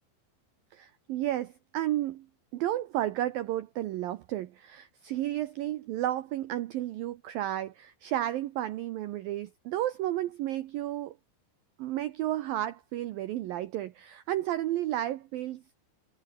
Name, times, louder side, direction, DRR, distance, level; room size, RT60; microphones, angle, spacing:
voice 1, 0.7-2.3 2.5-11.2 11.8-15.6, right 13 dB, 90° right, 2.0 m, -32 dB
omnidirectional pair, 5.5 m